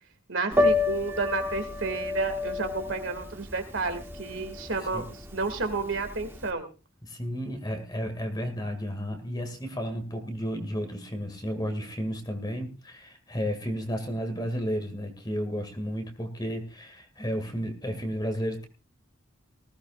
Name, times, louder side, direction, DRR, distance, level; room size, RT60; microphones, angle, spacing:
voice 1, 0.3-5.1 5.3-6.7, right 3 dB, 65° right, 7 dB, 2.3 m, -31 dB
Piano, 0.5-6.4, left 3 dB, 10° right, 1.5 m, -29 dB
voice 2, 7.0-18.7, equal, 20° left, 6 dB, 2.2 m, -32 dB
19.5 x 15.5 x 2.5 m, 0.32 s
head